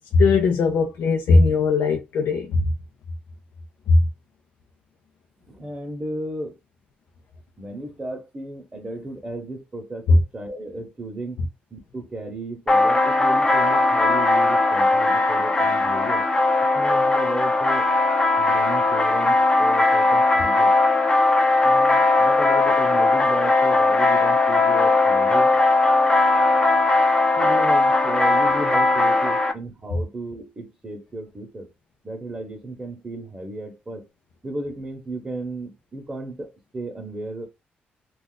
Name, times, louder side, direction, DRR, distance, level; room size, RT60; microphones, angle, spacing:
voice 1, 0.1-2.7 3.9-4.0 10.1-10.2, left 3 dB, 80° left, 0.5 m, -18 dB
voice 2, 5.5-6.6 7.6-11.4 11.7-16.2 16.7-17.9 18.4-20.7 21.6-25.5 27.4-31.7 32.0-34.1 34.4-37.5, right 2 dB, 25° right, 0.9 m, -34 dB
sound 1, 12.7-29.5, left 2 dB, 20° left, 0.5 m, -19 dB
2.4 x 2.4 x 3.9 m
cardioid pair, 90°, 4 cm